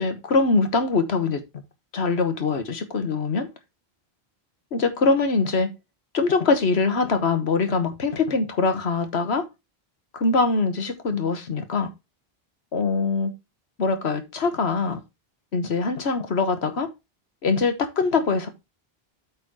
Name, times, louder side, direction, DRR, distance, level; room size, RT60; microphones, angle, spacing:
voice 1, 0.0-1.4 1.9-3.5 4.7-5.7 6.1-9.4 10.1-11.9 12.7-13.3 13.8-15.0 15.5-16.9 17.4-18.5, left 4 dB, 85° left, 1.5 m, -23 dB
8.4 x 4.2 x 4.7 m
omnidirectional pair, 1.1 m